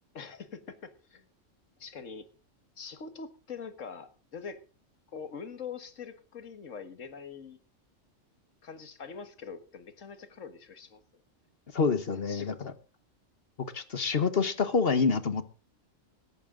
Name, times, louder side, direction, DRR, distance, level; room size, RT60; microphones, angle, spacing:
voice 1, 0.1-1.3 1.8-2.3 2.8-4.6 5.1-7.6 8.6-11.0 12.3-12.7, left 6 dB, 70° left, 11 dB, 1.9 m, -43 dB
voice 2, 11.7-12.5 13.7-15.4, left 5 dB, 50° left, 12 dB, 1.4 m, -27 dB
17.5 x 13.5 x 3.8 m, 0.35 s
omnidirectional pair, 1.3 m